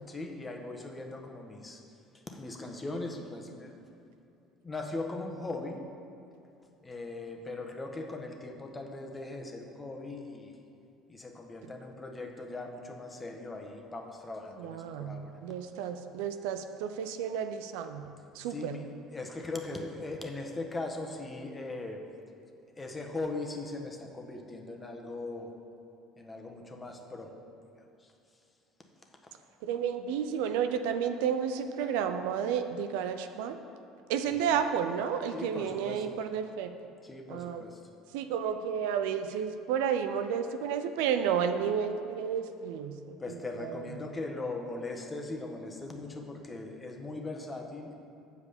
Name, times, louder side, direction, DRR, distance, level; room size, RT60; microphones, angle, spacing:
voice 1, 0.1-1.8 2.1-3.8 4.6-5.8 6.8-10.6 11.1-15.3 18.5-22.0 22.7-25.5 26.2-27.4 27.6-27.7 28.0-28.1 35.3-36.2 37.0-37.8 43.2-47.9, left 2 dB, 25° left, 2 dB, 1.2 m, -39 dB
voice 2, 14.6-18.8 29.6-33.6 34.1-36.7 37.3-37.6 38.1-43.8, right 7 dB, 75° right, 8 dB, 0.4 m, -32 dB
7.7 x 4.9 x 6.8 m, 2.6 s
hypercardioid pair, 70°, 0 cm